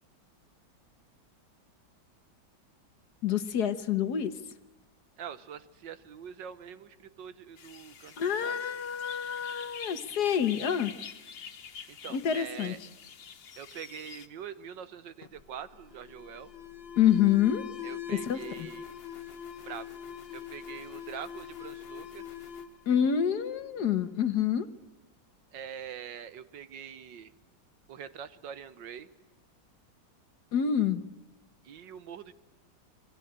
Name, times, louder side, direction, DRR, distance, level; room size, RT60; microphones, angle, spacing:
voice 1, 3.2-4.4 8.2-11.0 12.1-12.7 17.0-17.6 18.3-18.7 22.9-24.7 30.5-31.0, left 9 dB, 60° left, 12 dB, 1.6 m, -27 dB
voice 2, 5.2-8.6 11.9-12.8 13.6-16.5 17.8-18.9 19.6-19.9 20.3-22.3 25.5-27.3 27.9-29.1 31.6-32.3, right 8 dB, 75° right, 13 dB, 1.7 m, -44 dB
sound 1, 7.6-14.3, left 7 dB, 90° left, 2.1 m, -46 dB
Alarm, 15.2-23.8, left 9 dB, 40° left, 1.1 m, -43 dB
27.0 x 23.0 x 8.8 m, 1.1 s
omnidirectional pair, 2.0 m